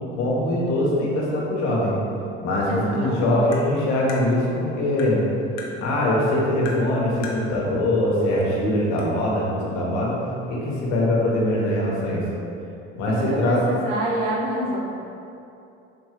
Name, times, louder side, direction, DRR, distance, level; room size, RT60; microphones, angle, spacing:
voice 1, 0.1-1.9 2.4-5.2 5.8-10.2 10.5-12.2 12.9-13.6, left 1 dB, 70° left, -4 dB, 1.1 m, -22 dB
voice 2, 2.7-3.4 13.1-14.8, right 1 dB, 80° right, -3 dB, 0.9 m, -27 dB
Tap, 3.5-3.7 4.1-4.2 5.0-5.1 5.6-5.7 6.7-6.8 7.2-7.4 8.4-8.5 9.0-9.1, left 4 dB, 50° left, 0.7 m, -36 dB
4.0 x 2.7 x 3.2 m, 2.8 s
supercardioid pair, 90°, 32 cm